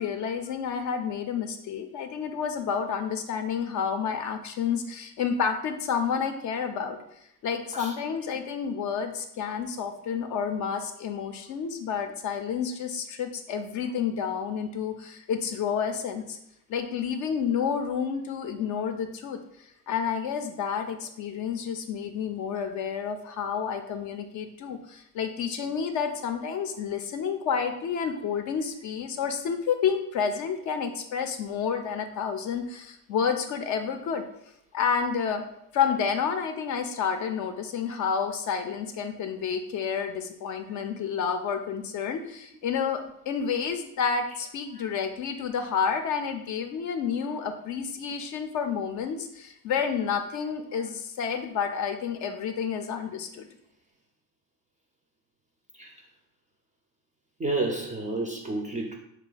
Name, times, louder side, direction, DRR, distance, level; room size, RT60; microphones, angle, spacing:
voice 1, 0.0-7.0 7.4-16.4 16.7-19.4 19.9-34.2 34.7-35.4 35.7-53.5, left 7 dB, 45° left, 7 dB, 0.4 m, -30 dB
voice 2, 57.4-59.0, right 2 dB, 20° right, 1 dB, 0.3 m, -30 dB
3.2 x 2.2 x 3.9 m, 0.75 s
hypercardioid pair, 60°, 46 cm